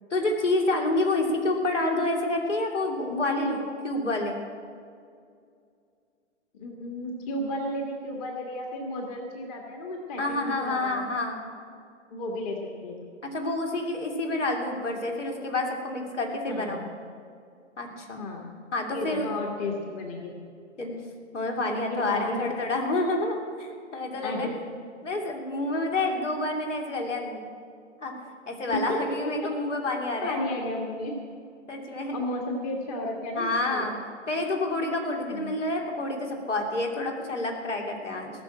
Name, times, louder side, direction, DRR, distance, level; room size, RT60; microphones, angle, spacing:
voice 1, 0.1-4.4 10.2-11.4 13.2-16.9 17.8-18.2 18.7-19.3 20.8-21.0 21.3-24.5 25.0-27.4 28.0-28.1 28.5-30.4 31.7-32.1 33.4-34.0 34.3-38.3, left 2 dB, 70° left, 1 dB, 3.1 m, -28 dB
voice 2, 3.1-3.6 6.5-11.0 12.1-12.6 12.8-13.1 16.5-16.8 18.2-18.4 18.9-20.3 21.9-22.4 24.2-24.5 28.9-29.2 30.2-31.1 32.1-33.9 35.3-35.6, left 1 dB, 30° left, 1 dB, 1.7 m, -33 dB
18.0 x 6.8 x 8.6 m, 2.3 s
figure-of-eight pair, 130°, 37 cm